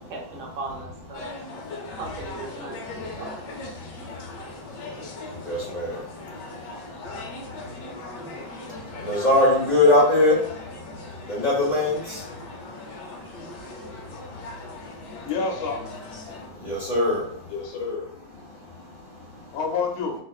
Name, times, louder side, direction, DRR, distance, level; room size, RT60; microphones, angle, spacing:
voice 1, 0.0-1.3 2.0-2.8 3.1-3.6, right 3 dB, 65° right, -1 dB, 1.3 m, -37 dB
sound 1, 1.1-16.5, left 3 dB, 65° left, 1.2 m, -39 dB
voice 2, 1.3-2.0 2.7-3.2 3.7-15.3 16.2-17.5 18.4-19.6, left 2 dB, 35° left, -5 dB, 0.7 m, -27 dB
voice 3, 15.2-15.8 17.5-18.4 19.5-20.2, left 5 dB, 85° left, 1 dB, 1.6 m, -29 dB
4.5 x 2.5 x 2.4 m, 0.70 s
omnidirectional pair, 2.2 m